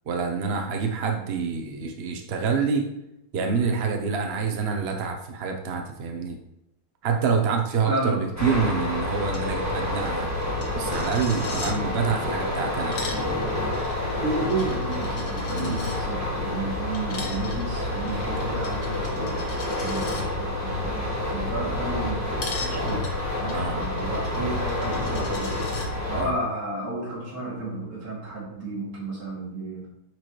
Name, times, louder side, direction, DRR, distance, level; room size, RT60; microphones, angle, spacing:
voice 1, 0.1-2.9 3.3-6.4 7.0-10.3 10.7-13.4 15.5-15.8 23.5-23.8 26.2-26.3, right 5 dB, 65° right, 3 dB, 0.6 m, -27 dB
voice 2, 7.9-8.2 14.0-19.4 19.8-21.0 21.3-22.2 22.6-23.1 23.4-25.6 26.1-29.9, right 2 dB, 45° right, -6 dB, 3.1 m, -32 dB
sound 1, 8.4-26.2, left 2 dB, 10° right, 1.2 m, -28 dB
Coin (dropping), 9.3-9.5 9.7-9.8 10.1-11.7 12.7-16.0 16.9-20.2 22.4-25.9, left 4 dB, 60° left, 1.6 m, -40 dB
9.4 x 4.6 x 3.2 m, 0.83 s
omnidirectional pair, 2.2 m